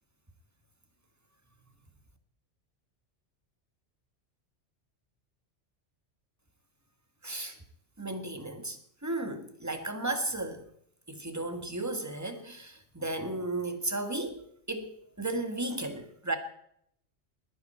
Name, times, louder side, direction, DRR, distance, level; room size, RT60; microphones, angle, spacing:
voice 1, 7.2-7.6 8.0-10.7 11.1-16.4, right 2 dB, 15° right, 1.7 m, -34 dB
20.5 x 10.0 x 4.4 m
omnidirectional pair, 1.2 m